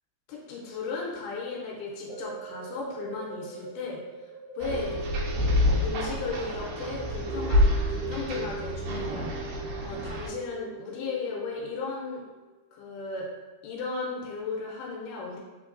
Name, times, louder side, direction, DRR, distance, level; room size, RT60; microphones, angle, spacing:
voice 1, 0.3-4.0 4.6-5.0 5.8-9.3 9.8-12.2 12.7-13.3 13.6-15.4, left 4 dB, 90° left, -2 dB, 2.3 m, -35 dB
sound 1, 2.1-12.4 12.9-13.0, right 3 dB, 60° left, 0.6 m, -40 dB
sound 2, 4.6-10.3, left 1 dB, 80° right, 2.0 m, -28 dB
4.5 x 3.5 x 2.5 m, 1.2 s
omnidirectional pair, 3.7 m